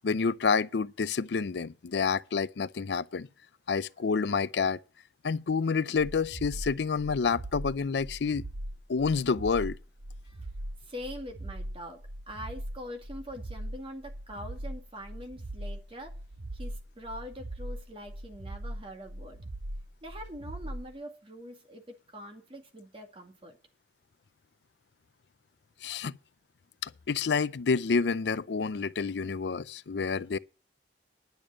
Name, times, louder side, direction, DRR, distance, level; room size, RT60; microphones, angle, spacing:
voice 1, 0.0-3.3 3.7-4.8 5.2-8.4 8.9-9.8 25.8-26.2 26.8-30.4, left 5 dB, 70° left, 0.5 m, -28 dB
sound 1, 6.0-20.9, right 1 dB, 80° right, 1.1 m, -40 dB
voice 2, 10.8-16.2 16.5-19.4 20.0-23.6, equal, 30° right, 2.1 m, -43 dB
10.5 x 6.9 x 7.5 m
head